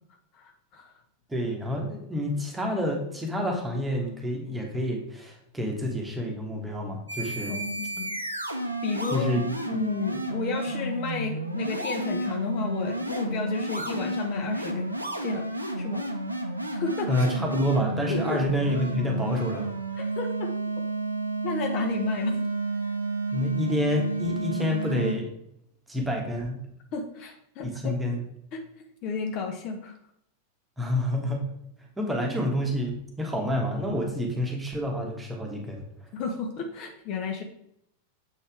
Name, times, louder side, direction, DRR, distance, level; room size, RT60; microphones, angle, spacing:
voice 1, 0.3-0.9 7.5-8.2 8.8-9.3 9.7-14.9 15.2-15.5 15.8-16.0 16.8-17.2 18.1-18.4 20.0-20.5 21.4-22.4 26.9-27.9 28.5-28.6 29.0-30.0 36.1-37.4, left 4 dB, 40° left, 3 dB, 0.9 m, -32 dB
voice 2, 1.3-7.5 9.1-9.5 17.1-19.7 23.3-25.3 25.9-26.6 27.6-28.2 30.8-31.4 32.0-35.8, left 1 dB, 10° right, 1 dB, 1.4 m, -28 dB
sound 1, 7.1-25.1, right 2 dB, 85° right, 0.6 m, -31 dB
7.2 x 4.2 x 3.5 m, 0.74 s
figure-of-eight pair, 90°, 0 cm